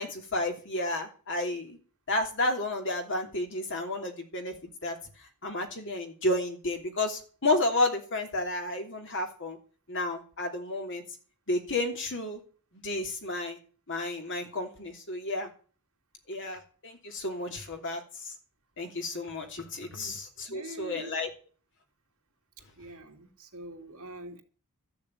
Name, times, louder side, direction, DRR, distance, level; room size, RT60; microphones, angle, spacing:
voice 1, 0.0-1.8 2.1-5.0 5.4-9.6 9.9-11.0 11.5-12.4 12.7-13.6 13.9-15.5 16.3-18.3 18.8-21.3, left 2 dB, 55° left, 4 dB, 2.9 m, -31 dB
voice 2, 20.5-21.1 22.8-24.4, right 1 dB, 65° right, 2 dB, 2.8 m, -44 dB
14.0 x 6.9 x 8.9 m, 0.41 s
head